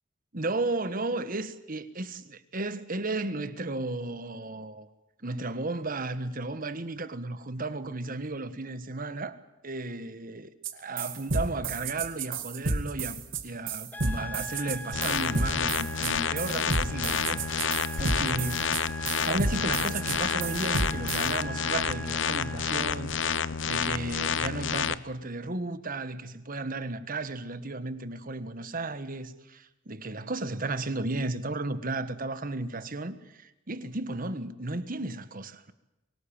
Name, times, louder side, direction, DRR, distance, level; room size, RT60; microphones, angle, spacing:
voice 1, 0.3-4.9 5.2-18.7 19.2-35.7, right 2 dB, 45° right, 1.5 m, -34 dB
sound 1, 10.6-10.7 11.0-21.3, right 3 dB, 75° right, 2.3 m, -31 dB
sound 2, 13.9-22.8, equal, 10° left, 1.3 m, -41 dB
sound 3, 14.9-24.9, left 7 dB, 70° left, 0.8 m, -29 dB
23.5 x 18.5 x 8.9 m
head